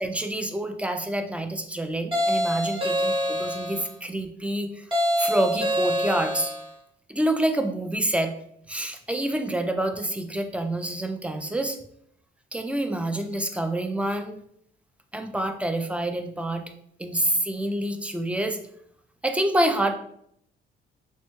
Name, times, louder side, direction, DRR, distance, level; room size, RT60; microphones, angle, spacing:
voice 1, 0.0-4.8 5.2-6.5 7.1-8.3 8.7-11.8 12.5-14.4 15.1-16.6 17.0-18.6 19.2-19.9, right 1 dB, 5° right, 6 dB, 0.3 m, -27 dB
sound 1, 2.1-3.9 4.9-6.7, equal, 25° right, 1.0 m, -25 dB
3.2 x 2.1 x 3.0 m, 0.70 s
cardioid pair, 90°, 20 cm